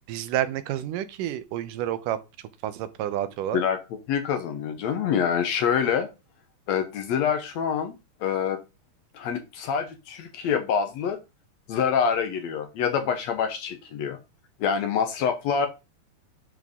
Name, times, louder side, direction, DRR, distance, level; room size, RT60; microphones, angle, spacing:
voice 1, 0.1-2.2 2.6-3.6, right 12 dB, 90° right, 2.4 m, -29 dB
voice 2, 4.1-6.1 6.7-8.0 8.2-8.6 9.1-11.2 11.7-14.2 14.6-15.7, left 7 dB, 70° left, 1.8 m, -26 dB
10.5 x 4.0 x 3.6 m
omnidirectional pair, 3.7 m